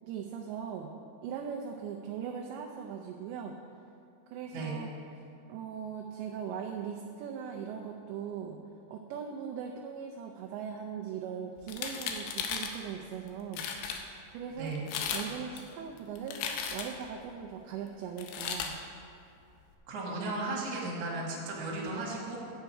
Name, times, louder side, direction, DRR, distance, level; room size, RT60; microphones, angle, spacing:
voice 1, 0.0-0.9 1.2-3.5 4.3-4.9 5.5-8.6 8.9-13.6 14.3-14.7 15.1-16.4 16.7-18.8, right 7 dB, 85° right, 1 dB, 2.6 m, -39 dB
voice 2, 4.5-4.8 14.6-14.9 19.9-22.4, right 2 dB, 50° right, -4 dB, 2.1 m, -35 dB
sound 1, 11.6-12.8 13.3-13.4 13.5-14.0 14.8-15.3 15.6-17.1 18.2-18.7, left 7 dB, 85° left, 2.3 m, -35 dB
11.5 x 7.9 x 4.7 m, 2.4 s
omnidirectional pair, 5.7 m